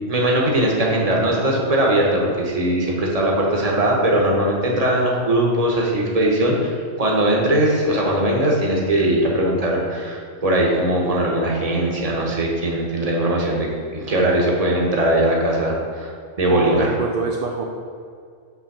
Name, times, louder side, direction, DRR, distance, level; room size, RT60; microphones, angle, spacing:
voice 1, 0.0-13.7 13.9-16.1 16.4-16.9, right 1 dB, 30° right, -2 dB, 1.0 m, -20 dB
voice 2, 16.5-17.6, right 4 dB, 65° right, 1 dB, 0.6 m, -24 dB
5.9 x 3.4 x 5.9 m, 2.3 s
omnidirectional pair, 1.3 m